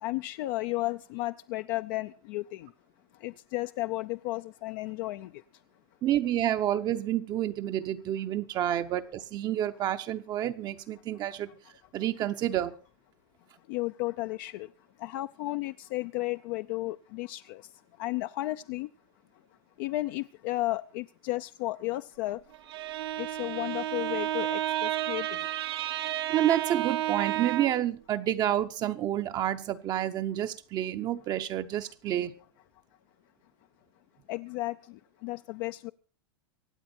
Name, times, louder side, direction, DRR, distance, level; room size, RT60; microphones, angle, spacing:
voice 1, 0.0-2.7 3.2-5.3 13.7-14.7 15.0-17.6 18.0-18.9 19.8-22.4 23.2-25.4 34.3-35.9, left 19 dB, 55° left, 0.6 m, -33 dB
voice 2, 6.0-11.5 11.9-12.8 26.3-32.3, right 12 dB, 30° right, 0.8 m, -29 dB
Bowed string instrument, 22.5-27.9, right 13 dB, 80° right, 1.5 m, -31 dB
24.5 x 8.6 x 4.3 m
supercardioid pair, 135°, 13 cm